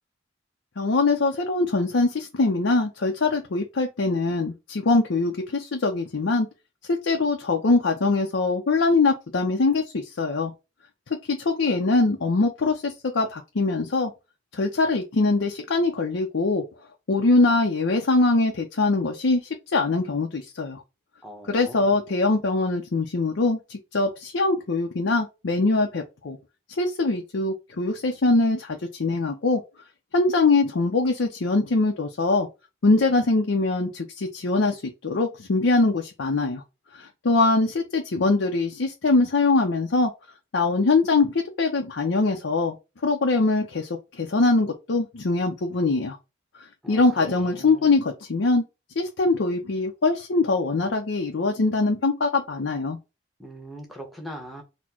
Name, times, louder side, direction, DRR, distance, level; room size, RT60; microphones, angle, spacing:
voice 1, 0.8-6.5 6.9-10.5 11.3-14.1 14.5-16.6 17.1-20.8 21.5-26.4 26.8-29.6 30.1-32.5 32.8-36.6 36.9-40.1 40.5-42.7 43.0-46.2 46.9-48.6 49.0-53.0, left 3 dB, 80° left, 0.6 m, -23 dB
voice 2, 21.2-22.0 46.8-48.0 53.4-54.6, equal, ahead, 1.0 m, -41 dB
4.2 x 2.1 x 4.3 m
head